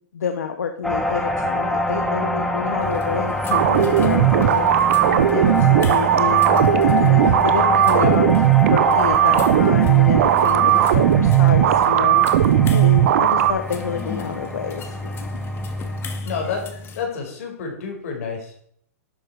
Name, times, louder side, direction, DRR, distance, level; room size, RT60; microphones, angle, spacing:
voice 1, 0.1-4.7 5.1-15.3, left 6 dB, 85° left, 7 dB, 1.1 m, -28 dB
sound 1, 0.8-16.2, left 1 dB, 5° left, 1.5 m, -26 dB
sound 2, 2.8-17.0, left 2 dB, 25° left, 1.8 m, -33 dB
sound 3, 3.5-13.5, right 11 dB, 60° right, 1.0 m, -16 dB
voice 2, 16.2-16.6 16.9-18.5, left 5 dB, 60° left, 2 dB, 5.1 m, -29 dB
12.0 x 9.1 x 4.9 m, 0.66 s
hypercardioid pair, 125°, 9 cm